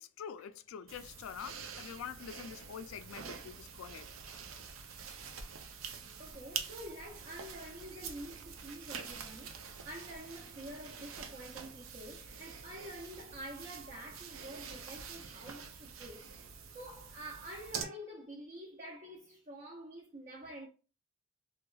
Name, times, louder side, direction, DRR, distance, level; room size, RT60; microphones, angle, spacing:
voice 1, 0.0-4.1, left 8 dB, 85° left, 0.3 m, -46 dB
sound 1, 0.9-17.8, right 6 dB, 90° right, 0.5 m, -46 dB
voice 2, 6.2-16.3 16.7-20.7, right 1 dB, 35° right, 0.5 m, -48 dB
2.7 x 2.3 x 2.3 m
head